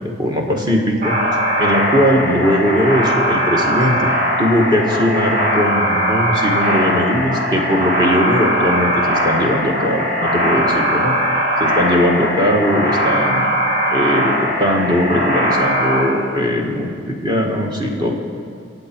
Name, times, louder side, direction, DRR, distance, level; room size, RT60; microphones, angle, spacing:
voice 1, 0.0-1.2 1.6-4.1 4.4-13.5 13.9-18.1, equal, 25° right, 0 dB, 1.7 m, -19 dB
sound 1, 1.0-16.0, equal, 50° right, 2.4 m, -19 dB
24.5 x 8.2 x 4.6 m, 2.2 s
head